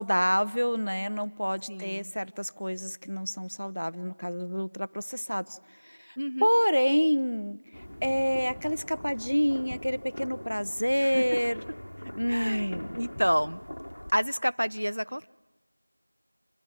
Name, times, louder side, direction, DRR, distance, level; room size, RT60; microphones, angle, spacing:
voice 1, 0.0-5.6 5.8-7.6 8.0-11.6 12.2-12.9, equal, 80° left, 16 dB, 0.9 m, -28 dB
voice 2, 1.7-2.1 6.2-6.5 11.0-11.4 12.0-13.6 14.1-15.3, equal, 85° right, 15 dB, 0.8 m, -30 dB
sound 1, 7.7-14.1, equal, 50° left, 1.5 m, -42 dB
27.5 x 24.5 x 7.5 m, 1.1 s
figure-of-eight pair, 175°, 0 cm